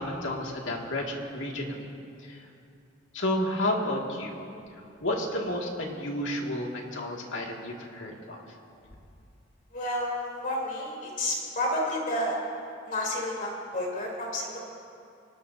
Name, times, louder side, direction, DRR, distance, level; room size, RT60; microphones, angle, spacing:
voice 1, 0.0-1.9 2.2-2.4 3.1-4.4 5.0-8.4, left 1 dB, 80° left, -1 dB, 2.2 m, -31 dB
voice 2, 9.7-12.4 12.8-14.6, left 1 dB, 45° left, -2 dB, 3.5 m, -30 dB
24.0 x 19.5 x 2.8 m, 2.5 s
head